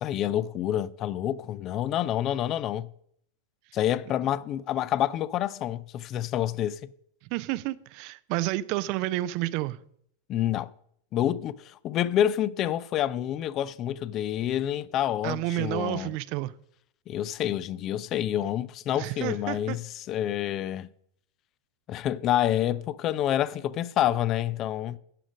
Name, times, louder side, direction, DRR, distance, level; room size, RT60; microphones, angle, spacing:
voice 1, 0.0-2.9 3.7-6.8 10.3-10.7 11.1-16.1 17.1-20.9 21.9-25.0, left 11 dB, 35° left, 0.4 m, -28 dB
voice 2, 7.3-9.8 15.2-16.5 18.9-19.8, right 16 dB, 45° right, 0.4 m, -30 dB
11.5 x 5.0 x 6.2 m
figure-of-eight pair, 90°, 0 cm